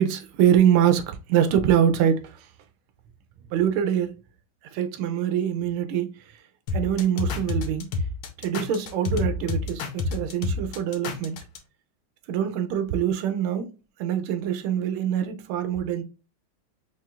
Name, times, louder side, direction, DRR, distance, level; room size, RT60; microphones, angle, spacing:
voice 1, 0.0-2.5 3.5-4.1 4.7-6.4 6.7-7.9 8.4-11.4 12.3-13.7 14.0-16.0, right 9 dB, 85° right, 1.5 m, -24 dB
sound 1, 6.7-11.6, left 3 dB, 90° left, 1.6 m, -28 dB
4.7 x 3.4 x 2.4 m
omnidirectional pair, 2.3 m